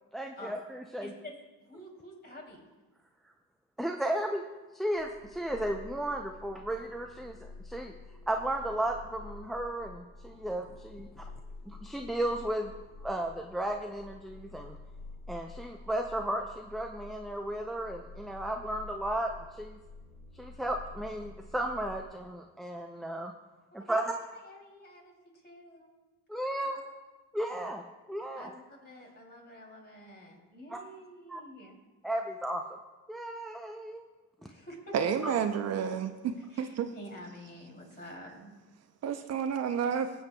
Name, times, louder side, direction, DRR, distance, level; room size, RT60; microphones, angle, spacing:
voice 1, 0.1-1.1 3.8-4.4 4.7-7.9 8.3-11.3 11.7-12.7 13.0-14.8 15.3-19.8 20.3-23.3 23.7-24.1 26.3-26.8 27.3-27.8 28.1-28.5 30.7-30.8 31.3-31.4 32.0-32.6 33.1-34.0 35.2-35.3, right 1 dB, ahead, 2 dB, 0.4 m, -34 dB
voice 2, 1.0-1.4 1.7-2.7 23.7-25.1 25.4-25.9 28.3-31.8 34.4-34.9 36.5-38.5, equal, 30° left, 0 dB, 2.8 m, -48 dB
sound 1, 5.0-22.1, left 3 dB, 45° left, 1.3 m, -49 dB
voice 3, 34.9-36.9 39.0-40.1, right 7 dB, 50° right, 8 dB, 0.6 m, -30 dB
18.5 x 7.8 x 2.2 m, 1.2 s
cardioid pair, 95°, 33 cm